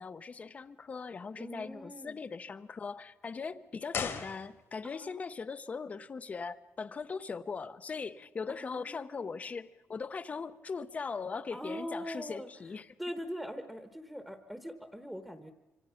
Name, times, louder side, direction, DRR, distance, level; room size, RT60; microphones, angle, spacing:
voice 1, 0.0-12.9, left 5 dB, 30° left, 13 dB, 0.7 m, -40 dB
voice 2, 1.4-2.2 4.8-5.3 8.5-9.3 11.5-12.5 13.0-15.5, equal, 5° right, 7 dB, 1.1 m, -42 dB
sound 1, 3.9-5.0 5.2-5.3, left 6 dB, 60° left, 1.8 m, -38 dB
25.5 x 25.5 x 5.7 m, 1.0 s
wide cardioid pair, 170°, 5 cm